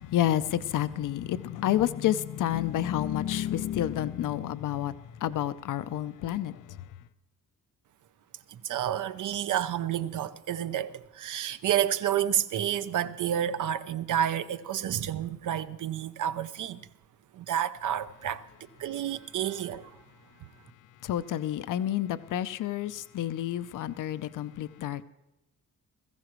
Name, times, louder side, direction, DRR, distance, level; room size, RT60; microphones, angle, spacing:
voice 1, 0.1-4.9 5.2-6.5 21.1-25.0, left 12 dB, 65° left, 0.6 m, -29 dB
voice 2, 8.7-16.8 17.4-18.4 18.8-19.8, right 10 dB, 60° right, 0.7 m, -30 dB
21.0 x 15.0 x 3.1 m
wide cardioid pair, 165°, 34 cm